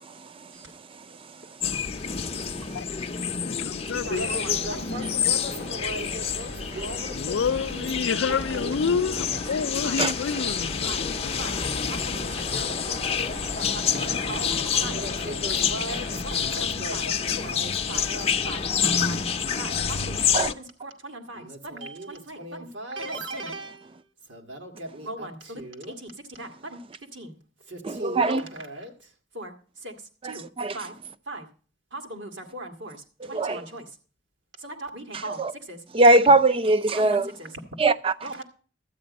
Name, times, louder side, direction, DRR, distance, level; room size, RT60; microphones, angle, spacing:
sound 1, 1.6-20.5, left 7 dB, 35° left, 0.6 m, -28 dB
voice 1, 3.4-4.3 7.1-11.5, left 6 dB, 90° left, 0.4 m, -28 dB
voice 2, 4.0-8.8 9.8-10.0 10.3-10.4 10.9-11.1 11.4-11.6 11.9-13.1 13.4-18.7 19.0-19.2 19.6-24.0 24.3-26.8 27.1-27.3 27.7-28.9 29.3-29.5 29.8-29.9 30.2-30.5 30.7-30.9 31.3-31.5 31.9-33.0 33.3-33.9 34.6-35.8 37.0-37.5 38.2-38.4, right 1 dB, 80° right, 1.8 m, -38 dB
sound 2, 4.1-16.2, right 2 dB, 60° right, 1.3 m, -44 dB
voice 3, 27.8-28.4 30.2-30.8 33.3-33.7 35.4-35.5 35.9-37.3 37.8-38.1, right 2 dB, 30° right, 0.5 m, -20 dB
12.5 x 8.5 x 5.2 m
head